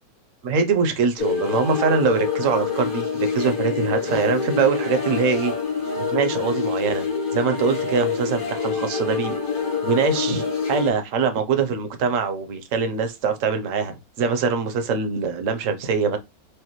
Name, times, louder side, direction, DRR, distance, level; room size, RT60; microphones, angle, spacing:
voice 1, 0.4-5.5 6.0-7.1 7.3-9.3 9.8-13.9 14.2-16.2, right 5 dB, 55° right, 1.1 m, -23 dB
sound 1, 1.2-10.9, left 5 dB, 35° left, 1.0 m, -26 dB
4.8 x 2.6 x 3.0 m
omnidirectional pair, 1.8 m